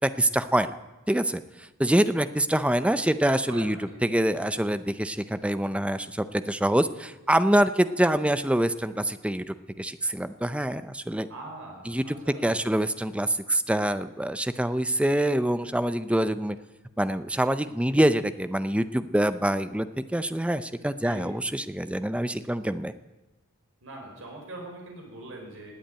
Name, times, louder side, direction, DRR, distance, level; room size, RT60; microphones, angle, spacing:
voice 1, 0.0-0.8 1.1-1.4 1.8-11.3 11.9-12.2 12.4-16.6 17.0-22.9, right 1 dB, 5° right, 12 dB, 0.5 m, -25 dB
voice 2, 3.5-4.0 11.3-12.6 21.0-21.3 23.8-25.8, right 2 dB, 60° right, 0 dB, 5.1 m, -42 dB
19.0 x 8.5 x 8.8 m, 1.1 s
head